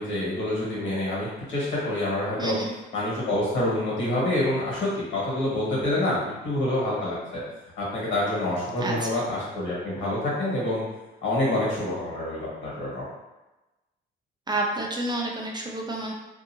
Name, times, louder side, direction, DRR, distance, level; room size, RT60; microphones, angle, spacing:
voice 1, 0.0-2.5 2.9-7.4 7.8-10.8 11.2-13.0, left 1 dB, 75° left, -6 dB, 1.4 m, -27 dB
voice 2, 2.4-2.7 8.8-9.1 14.5-16.1, right 2 dB, 20° right, -1 dB, 0.4 m, -29 dB
2.6 x 2.4 x 2.7 m, 1.1 s
cardioid pair, 90°, 20 cm